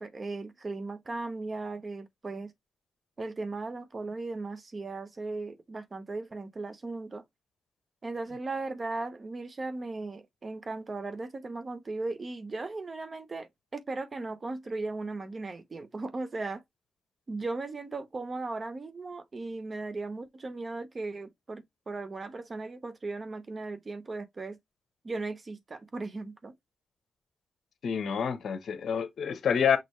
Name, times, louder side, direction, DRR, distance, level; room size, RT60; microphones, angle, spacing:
voice 1, 0.0-2.5 3.2-7.2 8.0-16.6 17.3-24.6 25.0-26.5, right 3 dB, 30° right, 0.8 m, -37 dB
voice 2, 27.8-29.8, left 7 dB, 60° left, 1.0 m, -28 dB
6.3 x 2.7 x 3.1 m
cardioid pair, 125°, 0 cm